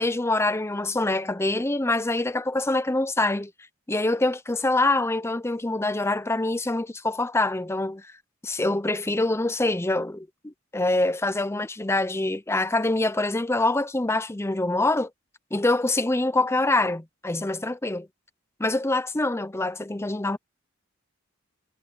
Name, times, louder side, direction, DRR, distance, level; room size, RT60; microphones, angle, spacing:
voice 1, 0.0-3.5 3.9-8.1 8.4-15.1 15.5-18.1 18.6-20.4, left 2 dB, 15° left, 0.6 m, -25 dB
head